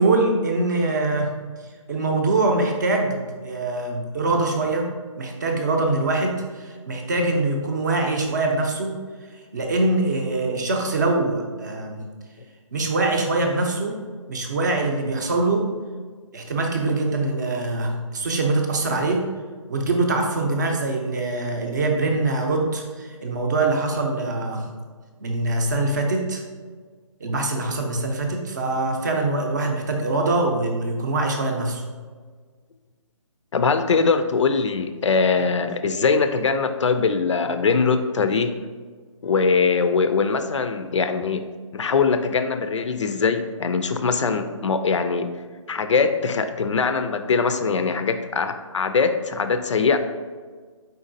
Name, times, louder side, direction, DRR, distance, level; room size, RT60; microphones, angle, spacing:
voice 1, 0.0-1.3 1.9-4.9 5.2-8.9 9.5-12.0 12.7-14.0 14.3-15.7 16.3-19.2 19.7-24.7 25.2-26.4 27.2-31.8, right 2 dB, 35° right, 2 dB, 0.6 m, -23 dB
voice 2, 33.5-38.5 39.2-41.4 41.7-45.3 45.7-50.0, left 5 dB, 65° left, 9 dB, 0.4 m, -22 dB
4.6 x 4.0 x 2.6 m, 1.5 s
hypercardioid pair, 160°, 17 cm